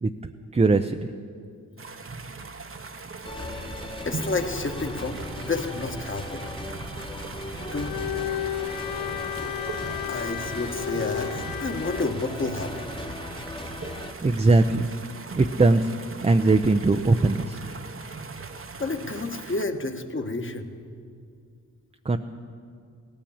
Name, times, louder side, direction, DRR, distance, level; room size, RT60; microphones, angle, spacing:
voice 1, 0.0-1.0 14.2-14.9 15.4-15.9 16.2-17.6 22.0-22.2, right 3 dB, 20° right, 6 dB, 0.6 m, -20 dB
sound 1, 1.8-19.7, right 4 dB, 35° right, 1.0 m, -40 dB
sound 2, 3.2-14.1, left 1 dB, 15° left, 1.3 m, -37 dB
voice 2, 4.0-6.4 7.7-7.9 10.1-12.9 18.8-20.7, left 3 dB, 35° left, 5 dB, 1.5 m, -30 dB
Bowed string instrument, 7.7-12.2, left 11 dB, 70° left, 0.6 m, -33 dB
17.0 x 10.5 x 7.2 m, 2.3 s
supercardioid pair, 45°, 35 cm